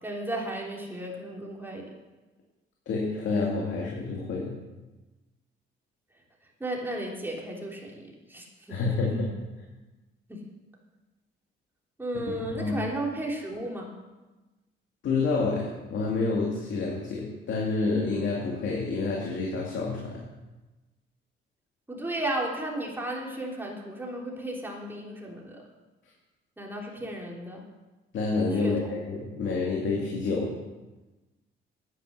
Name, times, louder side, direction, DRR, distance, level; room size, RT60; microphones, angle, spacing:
voice 1, 0.0-1.9 6.6-9.3 10.3-10.4 12.0-13.9 21.9-25.6 26.6-27.6 28.6-28.9, right 1 dB, 10° right, -2 dB, 3.3 m, -34 dB
voice 2, 2.9-4.6 8.7-9.3 12.6-12.8 15.0-20.2 28.1-30.5, left 3 dB, 70° left, -2 dB, 2.4 m, -28 dB
9.8 x 9.7 x 6.8 m, 1.1 s
cardioid pair, 90°, 20 cm